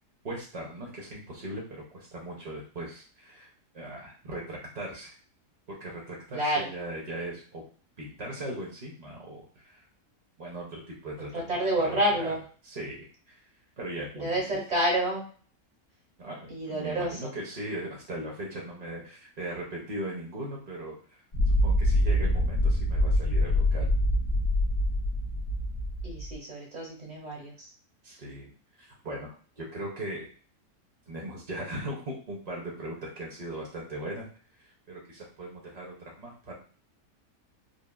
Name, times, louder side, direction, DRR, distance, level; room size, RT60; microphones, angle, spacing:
voice 1, 0.2-3.5 3.7-5.1 5.7-7.6 8.0-9.8 10.4-11.6 11.9-12.3 12.6-13.4 13.8-14.4 16.2-21.0 21.5-23.9 28.0-28.5 28.8-30.3 31.1-34.3 34.6-36.5, right 1 dB, 60° right, -3 dB, 0.4 m, -39 dB
voice 2, 6.3-6.7 11.3-12.4 14.1-15.2 16.5-17.4 26.0-27.7, right 1 dB, 35° right, -1 dB, 0.9 m, -29 dB
sound 1, 21.3-26.3, left 1 dB, 35° left, 0.6 m, -25 dB
3.3 x 2.4 x 2.2 m, 0.43 s
omnidirectional pair, 1.7 m